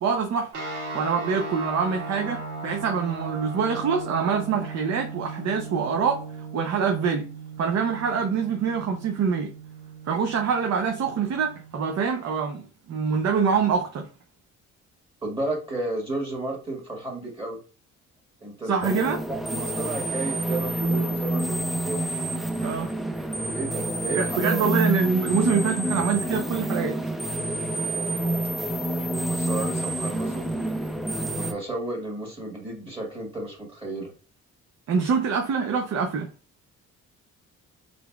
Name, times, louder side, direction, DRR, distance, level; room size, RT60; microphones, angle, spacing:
voice 1, 0.0-0.5 0.9-6.2 6.5-7.3 7.6-9.5 10.1-14.1 18.7-19.2 22.6-22.9 24.1-27.0 34.9-36.3, right 6 dB, 60° right, 0.7 m, -25 dB
sound 1, 0.5-11.7, right 3 dB, 85° right, 1.3 m, -37 dB
voice 2, 15.2-17.6 18.4-18.7 19.3-22.0 23.5-24.7 29.3-30.5 31.2-34.1, right 2 dB, 20° right, 1.6 m, -32 dB
sound 2, 18.8-31.5, right 1 dB, ahead, 0.4 m, -28 dB
3.9 x 3.5 x 2.3 m
cardioid pair, 90°, 30 cm